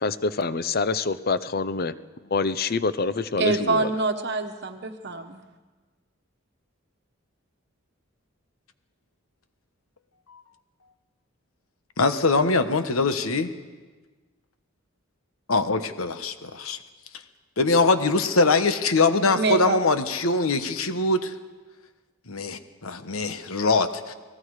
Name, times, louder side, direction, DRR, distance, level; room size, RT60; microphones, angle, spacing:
voice 1, 0.0-1.9 2.2-3.9, left 4 dB, 45° left, 14 dB, 0.7 m, -26 dB
voice 2, 3.4-5.4 19.3-19.8, right 3 dB, 50° right, 6 dB, 1.2 m, -25 dB
voice 3, 12.0-13.5 15.5-16.8 17.6-21.3 22.3-24.1, left 3 dB, 85° left, 9 dB, 1.3 m, -23 dB
29.5 x 19.0 x 4.9 m, 1.3 s
head